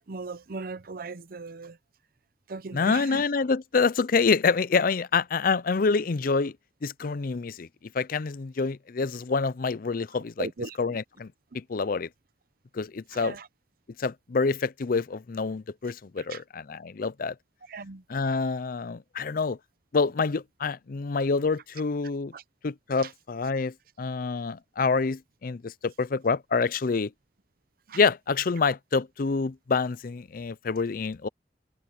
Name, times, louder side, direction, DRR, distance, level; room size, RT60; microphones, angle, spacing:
voice 1, 0.1-1.8 2.5-3.2 10.4-11.0 13.1-13.5 16.2-16.4 17.7-18.0 22.3-22.4 23.0-23.1 27.9-28.0, right 3 dB, 55° right, 0.7 m, -38 dB
voice 2, 2.7-6.5 6.8-7.7 7.9-10.5 10.8-12.1 12.7-13.4 14.0-17.4 18.1-19.6 19.9-22.3 22.6-27.1 27.9-31.3, left 4 dB, 55° left, 0.5 m, -27 dB
head